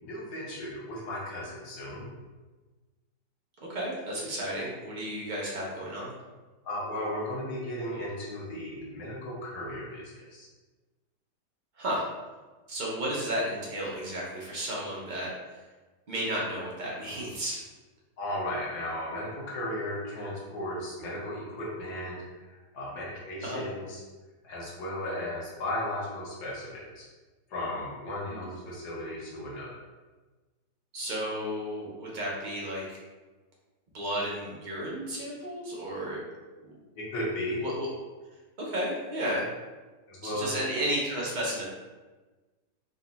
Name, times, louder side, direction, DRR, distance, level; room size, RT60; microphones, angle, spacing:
voice 1, 0.0-2.1 6.6-10.5 18.2-22.2 22.5-24.0 24.4-27.1 27.5-29.8 37.0-37.6 40.1-40.5, left 1 dB, 70° left, -5 dB, 1.6 m, -35 dB
voice 2, 3.7-6.1 11.8-12.0 12.7-15.6 16.1-17.6 23.4-23.6 28.3-28.5 30.9-33.0 33.9-36.2 36.6-36.7 37.6-37.9 38.6-39.5 40.2-41.6, equal, 80° right, -4 dB, 0.4 m, -33 dB
3.9 x 2.2 x 3.9 m, 1.3 s
omnidirectional pair, 1.9 m